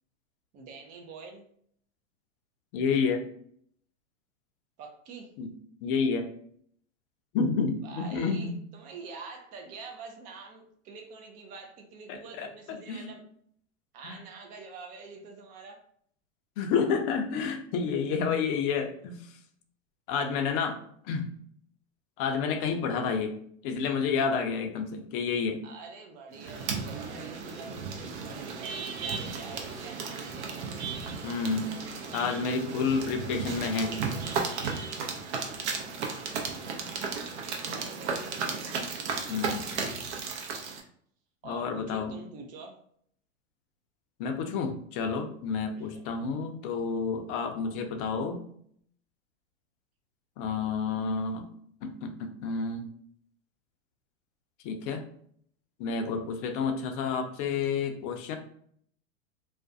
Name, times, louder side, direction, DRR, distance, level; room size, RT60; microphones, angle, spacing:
voice 1, 0.5-1.5 4.8-5.3 7.8-13.2 13.9-15.8 25.6-27.8 28.2-30.7 37.7-38.7 41.4-42.8 45.7-46.1, right 4 dB, 20° right, 3 dB, 0.4 m, -46 dB
voice 2, 2.7-3.2 5.4-5.5 5.8-6.3 7.3-8.6 12.1-13.1 14.0-14.1 16.6-19.2 20.1-20.8 21.0-21.3 22.2-23.4 23.6-25.6 31.2-31.8 32.1-34.0 39.3-39.8 41.4-42.1 44.2-48.4 50.4-51.5 51.8-52.9 54.6-55.0 55.8-58.4, left 5 dB, 45° left, 5 dB, 0.5 m, -30 dB
sound 1, 26.4-40.8, right 5 dB, 60° right, 0.7 m, -35 dB
2.4 x 2.1 x 2.5 m, 0.63 s
hypercardioid pair, 105°, 39 cm